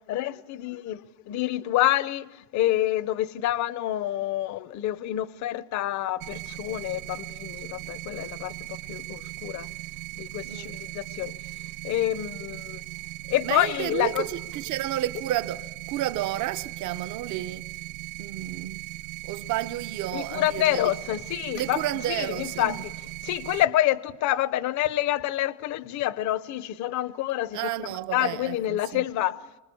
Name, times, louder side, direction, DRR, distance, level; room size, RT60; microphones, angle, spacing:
voice 1, 0.1-1.0 1.3-8.5 8.9-9.7 10.2-11.3 11.8-12.8 13.3-14.2 20.1-21.8 22.2-22.7 23.2-29.4, left 14 dB, 45° left, 0.7 m, -27 dB
sound 1, 6.2-23.6, right 18 dB, 85° right, 0.8 m, -39 dB
voice 2, 10.4-10.8 13.4-17.6 18.2-18.8 19.2-20.9 21.5-22.9 27.5-29.0, right 13 dB, 45° right, 0.8 m, -31 dB
25.0 x 20.5 x 8.4 m
cardioid pair, 180°, 41 cm